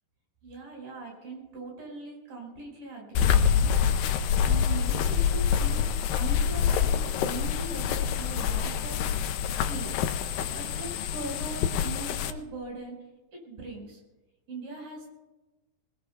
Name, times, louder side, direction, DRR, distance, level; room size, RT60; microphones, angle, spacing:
voice 1, 0.4-3.7 4.4-5.8 6.1-9.0 9.5-10.1 10.5-13.0 13.3-14.0 14.5-15.1, right 2 dB, 85° right, 0 dB, 6.9 m, -40 dB
sound 1, 3.2-12.3, left 8 dB, 85° left, 2.4 m, -26 dB
25.0 x 19.5 x 2.3 m, 1.1 s
omnidirectional pair, 4.1 m